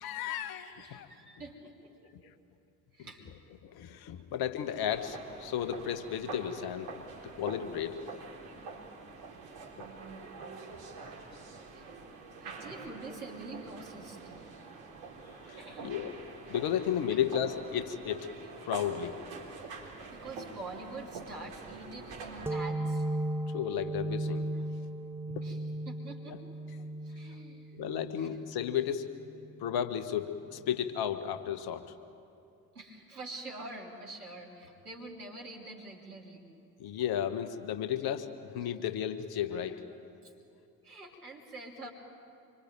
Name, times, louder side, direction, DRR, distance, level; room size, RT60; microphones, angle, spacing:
voice 1, 0.0-1.1 3.6-6.9 7.2-8.1 15.5-16.1 16.5-18.3 18.6-19.2 23.5-24.4 25.3-25.4 27.8-29.1 29.6-31.8 36.8-39.8, left 9 dB, 55° left, 9 dB, 1.7 m, -33 dB
voice 2, 0.8-2.1 2.9-3.3 9.7-10.4 11.7-11.9 12.4-14.2 15.6-16.0 17.1-17.2 20.0-23.1 24.5-24.6 25.4-26.4 26.8-27.8 28.2-28.3 32.7-36.4 39.5-39.8 40.2-40.3 40.8-41.9, right 2 dB, 85° right, -1 dB, 3.2 m, -46 dB
sound 1, 4.9-22.5, right 4 dB, 55° right, 4.1 m, -46 dB
sound 2, 22.5-29.8, right 1 dB, 5° right, 0.7 m, -36 dB
26.5 x 24.0 x 9.1 m, 2.5 s
figure-of-eight pair, 55°, 44 cm